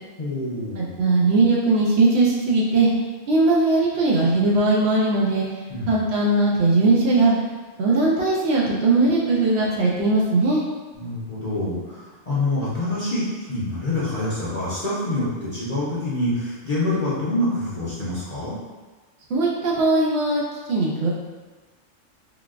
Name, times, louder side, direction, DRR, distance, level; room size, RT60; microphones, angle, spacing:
voice 1, 0.2-0.9 5.7-6.0 11.0-18.5, left 1 dB, 40° left, -9 dB, 0.6 m, -26 dB
voice 2, 0.8-2.9 3.3-5.5 5.9-7.3 7.8-10.7 19.3-20.4 20.7-21.1, right 2 dB, 65° right, -4 dB, 0.8 m, -19 dB
3.7 x 2.3 x 2.4 m, 1.3 s
omnidirectional pair, 1.3 m